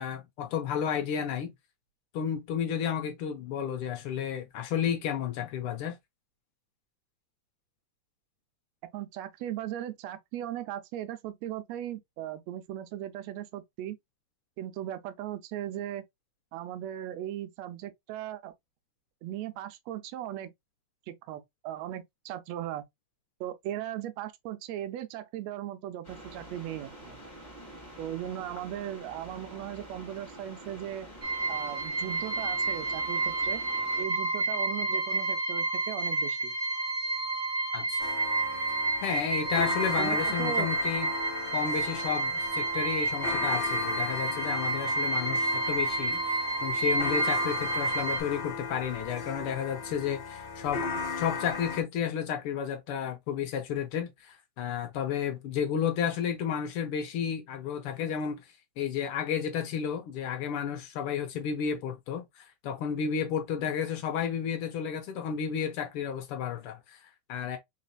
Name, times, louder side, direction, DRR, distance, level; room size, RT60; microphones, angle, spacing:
voice 1, 0.0-1.5 2.1-6.0 37.7-38.0 39.0-41.1 41.5-50.8 51.2-67.6, left 8 dB, 85° left, 1.2 m, -32 dB
voice 2, 8.9-14.0 14.6-16.0 16.5-18.5 19.2-20.5 21.1-22.8 23.4-27.2 28.0-31.1 31.5-33.6 34.0-36.5 40.0-40.7, right 12 dB, 75° right, 1.6 m, -38 dB
sound 1, 26.0-34.0, right 1 dB, 20° left, 1.7 m, -47 dB
sound 2, 31.2-48.2, right 3 dB, 50° right, 1.0 m, -30 dB
sound 3, 38.0-51.8, left 5 dB, 55° left, 1.3 m, -37 dB
4.1 x 4.0 x 2.3 m
omnidirectional pair, 3.4 m